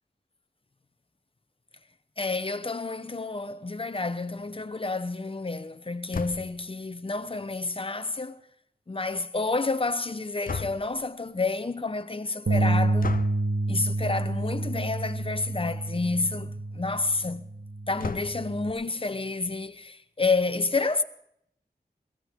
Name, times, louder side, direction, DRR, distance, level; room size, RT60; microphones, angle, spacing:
voice 1, 2.2-8.4 8.9-13.2 13.7-17.5 17.9-21.0, left 3 dB, 35° left, 0.9 m, -29 dB
sound 1, 6.1-6.7 10.5-11.1 13.0-13.5 14.7-14.9 15.3-15.4 15.7-15.8 18.0-18.6, left 5 dB, 60° left, 0.6 m, -35 dB
Bass guitar, 12.5-18.7, right 2 dB, 70° right, 1.4 m, -28 dB
22.0 x 17.0 x 3.7 m
wide cardioid pair, 65°, 17 cm